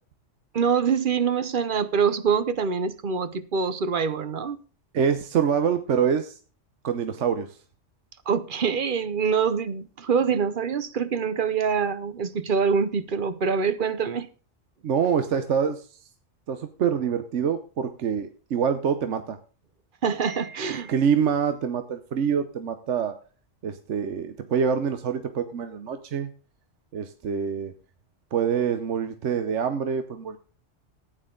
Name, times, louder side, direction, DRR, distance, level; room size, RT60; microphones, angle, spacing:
voice 1, 0.5-4.6 8.3-14.3 20.0-20.9, right 6 dB, 50° right, 0.9 m, -25 dB
voice 2, 4.9-6.4 6.8-7.6 14.8-15.9 16.5-19.4 20.7-23.2 23.6-26.3 26.9-27.7 28.3-30.4, right 7 dB, 75° right, 1.1 m, -25 dB
14.5 x 9.2 x 3.8 m
omnidirectional pair, 1.3 m